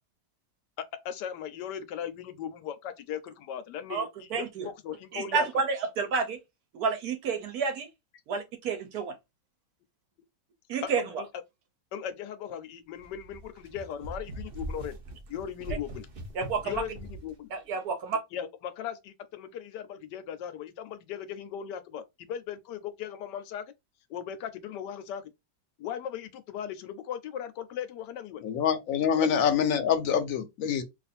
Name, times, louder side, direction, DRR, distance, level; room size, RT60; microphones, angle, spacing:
voice 1, 0.8-5.5 10.8-11.3 11.9-15.0 15.3-16.1 16.6-17.5 18.3-23.6 24.1-25.3 25.8-28.4 29.2-29.3, left 9 dB, 90° left, 1.3 m, -38 dB
voice 2, 3.9-4.7 5.1-6.4 6.7-7.9 8.3-9.1 10.7-11.0 16.3-16.8 17.5-18.2, right 5 dB, 65° right, 1.2 m, -30 dB
sound 1, 13.0-17.3, right 1 dB, 50° right, 0.7 m, -41 dB
voice 3, 28.4-30.8, left 7 dB, 65° left, 1.0 m, -25 dB
2.9 x 2.5 x 4.1 m
omnidirectional pair, 1.8 m